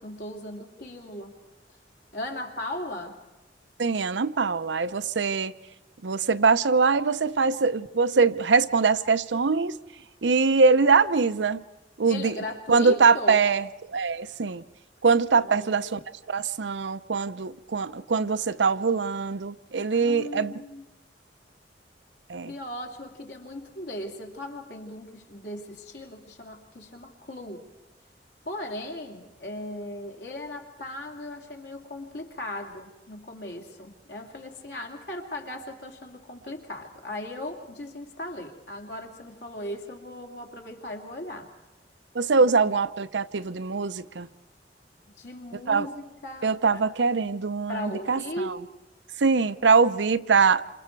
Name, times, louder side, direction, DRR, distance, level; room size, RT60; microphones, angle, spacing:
voice 1, 0.0-1.4 2.1-3.2 12.1-13.4 15.4-15.9 19.9-20.8 22.5-27.7 28.4-41.5 45.1-46.9 47.7-48.6, left 1 dB, 70° left, 2.8 m, -38 dB
voice 2, 3.8-5.5 6.0-9.8 10.2-11.6 12.0-12.4 12.7-14.6 15.0-16.0 16.3-20.5 22.3-22.5 42.1-44.3 45.7-45.9 46.4-48.5 49.2-50.6, right 4 dB, 85° right, 0.7 m, -23 dB
28.5 x 27.5 x 4.6 m
head